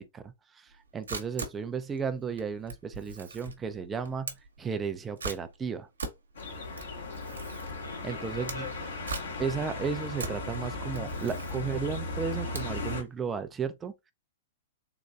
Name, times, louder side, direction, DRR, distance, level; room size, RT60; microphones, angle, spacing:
voice 1, 0.0-5.9 8.0-8.7 9.4-14.1, right 6 dB, 15° right, 0.5 m, -34 dB
Camera, 0.7-13.1, right 3 dB, 75° right, 1.0 m, -42 dB
sound 1, 6.3-13.0, left 2 dB, 65° left, 1.8 m, -36 dB
voice 2, 7.0-8.9, left 3 dB, 85° left, 1.1 m, -46 dB
3.8 x 3.0 x 2.5 m
figure-of-eight pair, 105°, 0 cm